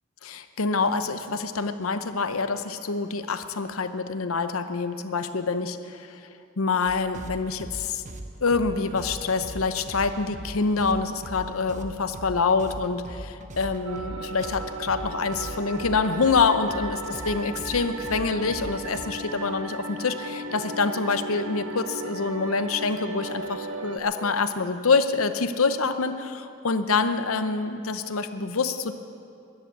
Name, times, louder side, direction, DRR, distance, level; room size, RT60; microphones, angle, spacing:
voice 1, 0.2-6.3 6.6-8.0 8.4-28.9, left 4 dB, 80° left, 10 dB, 0.8 m, -26 dB
sound 1, 6.9-19.1, right 1 dB, 35° right, 0.9 m, -40 dB
sound 2, 13.9-24.0, right 2 dB, 85° right, 1.0 m, -36 dB
13.5 x 11.0 x 8.2 m, 2.5 s
head